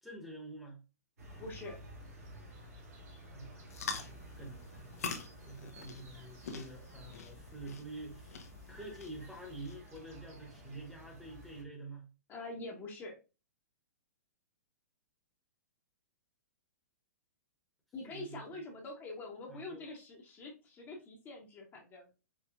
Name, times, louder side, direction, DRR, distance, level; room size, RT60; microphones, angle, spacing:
voice 1, 0.0-0.8 3.3-12.1 18.1-18.7 19.5-19.8, right 2 dB, ahead, 1.1 m, -48 dB
sound 1, 1.2-11.6, equal, 65° right, 1.9 m, -53 dB
voice 2, 1.4-1.8 12.3-13.2 17.9-22.1, left 2 dB, 25° left, 1.0 m, -45 dB
sound 2, 3.7-10.0, left 5 dB, 65° left, 0.8 m, -45 dB
4.7 x 3.1 x 2.4 m
hypercardioid pair, 115°, 9 cm